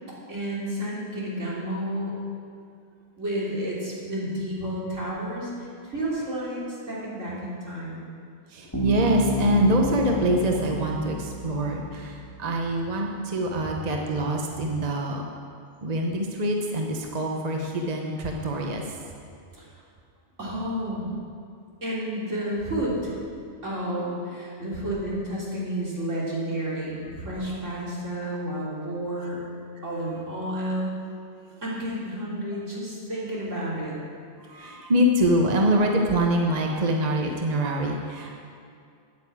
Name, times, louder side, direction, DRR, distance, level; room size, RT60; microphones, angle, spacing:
voice 1, 0.3-2.1 3.2-8.1 19.5-19.7 20.4-21.1 21.8-23.1 23.6-29.4 29.8-30.9 31.6-34.0, right 1 dB, 75° right, -6 dB, 3.7 m, -31 dB
voice 2, 8.5-15.2 15.8-19.0 34.4-38.4, right 1 dB, 35° right, 1 dB, 1.1 m, -25 dB
Bass guitar, 8.7-12.5, equal, 20° left, 2.0 m, -31 dB
9.6 x 9.5 x 8.3 m, 2.4 s
omnidirectional pair, 1.3 m